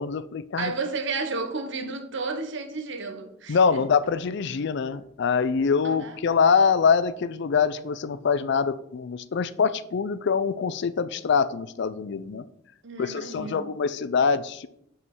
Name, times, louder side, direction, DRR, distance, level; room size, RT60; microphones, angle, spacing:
voice 1, 0.0-0.7 3.5-12.4 13.0-14.7, left 5 dB, 60° left, 0.4 m, -24 dB
voice 2, 0.6-3.6 5.8-6.2 12.8-13.7, right 3 dB, 65° right, 1.1 m, -32 dB
5.6 x 5.5 x 6.0 m
head